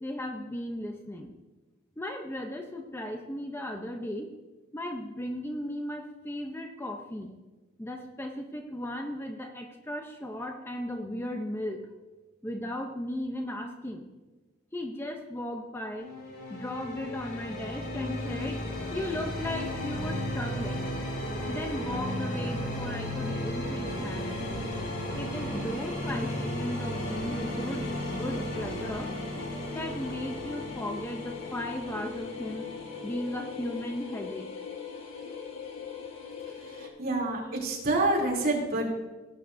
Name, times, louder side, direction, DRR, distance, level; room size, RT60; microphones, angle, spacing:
voice 1, 0.0-1.3 2.0-4.3 4.7-7.3 7.8-11.8 12.4-14.1 14.7-16.1 16.5-18.6 18.9-20.9 21.5-24.4 25.1-29.1 29.7-32.7 33.0-34.5, left 1 dB, 10° left, 3 dB, 0.6 m, -36 dB
sound 1, 16.0-33.7, left 1 dB, 55° left, 3.5 m, -35 dB
sound 2, 23.8-36.9, left 4 dB, 90° left, 1.5 m, -41 dB
voice 2, 36.5-38.9, right 2 dB, 50° right, -3 dB, 2.9 m, -28 dB
17.5 x 9.1 x 2.6 m, 1.2 s
head